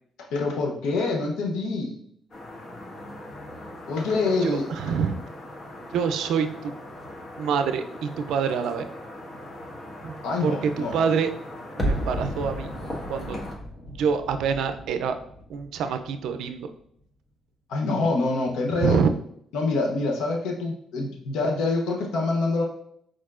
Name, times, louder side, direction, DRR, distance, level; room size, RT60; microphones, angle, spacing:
voice 1, 0.3-2.0 3.9-4.7 10.2-11.0 17.7-19.0 19.5-22.6, left 3 dB, 85° left, 1 dB, 0.7 m, -26 dB
sound 1, 2.3-13.5, left 1 dB, 45° left, 1.4 m, -40 dB
voice 2, 4.4-5.2 5.9-6.7 7.4-8.9 10.0-10.2 10.4-11.3 11.8-12.7 13.1-13.4 13.9-15.1 15.5-16.7 18.8-19.1, right 6 dB, 80° right, 8 dB, 0.4 m, -26 dB
sound 2, 11.8-16.7 17.0-17.1, equal, 25° left, 1.2 m, -33 dB
4.6 x 4.3 x 2.4 m, 0.68 s
cardioid pair, 90°, 0 cm